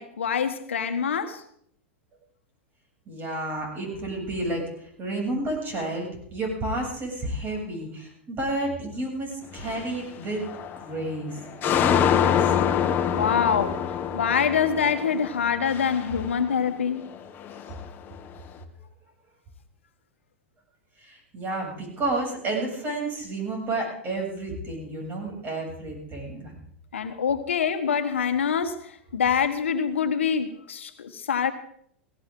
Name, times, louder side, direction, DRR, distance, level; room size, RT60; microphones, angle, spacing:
voice 1, 0.0-1.4 13.1-13.8 14.1-17.0 26.9-28.8 29.1-31.5, left 7 dB, 85° left, 9 dB, 1.3 m, -25 dB
voice 2, 3.1-10.5 10.8-12.6 21.0-26.5 27.1-27.2, right 2 dB, 30° right, 1 dB, 7.4 m, -31 dB
sound 1, 9.5-10.0 10.4-11.0 11.4-16.8 17.0-18.2, left 8 dB, 35° left, 1.5 m, -26 dB
18.0 x 17.0 x 3.8 m, 0.66 s
hypercardioid pair, 100°, 6 cm